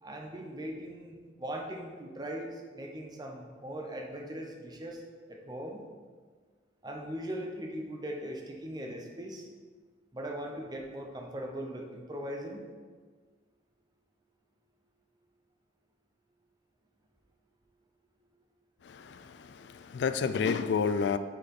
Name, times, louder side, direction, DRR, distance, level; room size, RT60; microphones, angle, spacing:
voice 1, 0.0-5.0 5.3-5.8 6.8-9.5 10.1-12.6, right 1 dB, 20° right, 0.7 m, -39 dB
voice 2, 18.8-21.2, left 6 dB, 70° left, 0.3 m, -30 dB
6.5 x 4.0 x 5.4 m
head